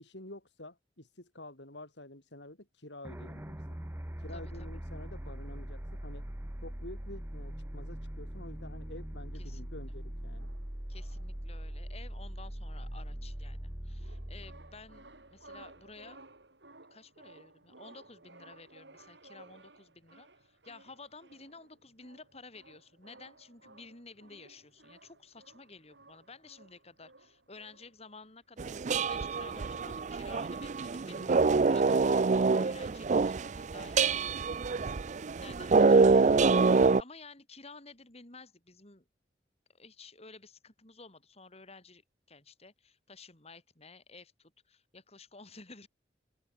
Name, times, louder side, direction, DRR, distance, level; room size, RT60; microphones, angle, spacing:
voice 1, 0.0-3.8 4.2-6.2 6.6-10.5, left 1 dB, 75° left, 7.5 m, -49 dB
sound 1, 3.0-15.8, equal, 15° right, 0.9 m, -41 dB
voice 2, 4.3-4.7 9.3-9.7 10.9-16.2 16.9-35.0 35.4-39.0 39.7-42.0 42.3-45.9, left 3 dB, 35° left, 3.9 m, -53 dB
sound 2, 10.2-30.1, right 2 dB, 70° right, 6.5 m, -58 dB
sound 3, 28.6-37.0, right 4 dB, 40° right, 0.5 m, -26 dB
open air
head